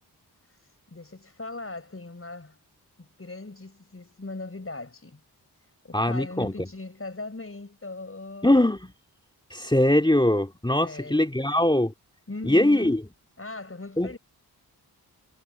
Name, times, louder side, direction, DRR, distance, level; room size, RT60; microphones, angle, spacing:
voice 1, 0.9-2.6 3.0-5.2 5.8-8.6 10.8-11.6 12.3-13.0 13.4-14.2, left 2 dB, 35° left, 6.4 m, -39 dB
voice 2, 5.9-6.7 8.4-8.9 9.5-11.9 12.4-13.0 14.0-14.2, left 1 dB, 10° left, 2.6 m, -22 dB
cardioid pair, 55°, 40 cm